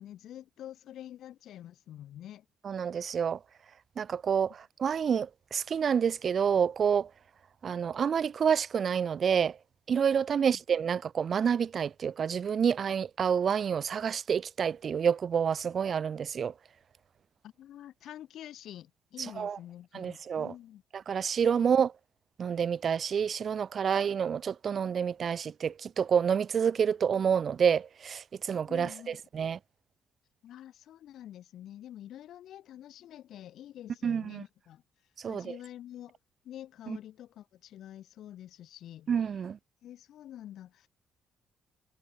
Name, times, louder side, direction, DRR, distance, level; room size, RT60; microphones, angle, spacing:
voice 1, 0.0-2.4 10.4-10.6 17.4-20.8 28.7-29.2 30.4-34.8 35.3-36.2 36.4-39.1 39.8-40.9, left 12 dB, 75° left, 1.5 m, -47 dB
voice 2, 2.6-3.4 4.0-7.1 7.6-9.6 9.9-16.5 19.2-19.6 19.9-20.5 20.9-21.9 22.4-29.6 34.0-34.4 35.2-35.6 36.9-37.0 39.1-39.6, right 7 dB, 50° right, 0.5 m, -28 dB
cardioid pair, 90°, 0 cm